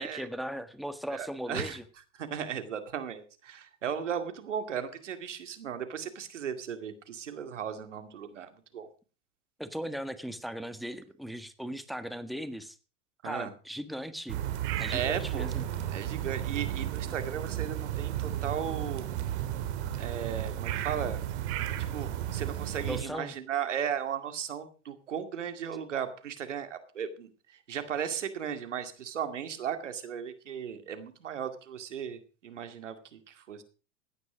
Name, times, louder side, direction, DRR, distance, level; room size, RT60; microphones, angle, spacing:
voice 1, 0.0-1.8 9.6-12.8 13.2-14.4 14.8-15.7 22.9-23.3, equal, ahead, 9 dB, 1.6 m, -38 dB
voice 2, 1.1-1.8 2.2-8.9 13.2-13.5 14.9-15.5 15.9-19.1 20.0-21.2 21.9-27.3 27.7-33.6, right 8 dB, 85° right, 8 dB, 2.3 m, -36 dB
sound 1, 14.3-23.0, right 12 dB, 65° right, 2.7 m, -33 dB
16.5 x 10.0 x 5.0 m, 0.37 s
hypercardioid pair, 95°, 35 cm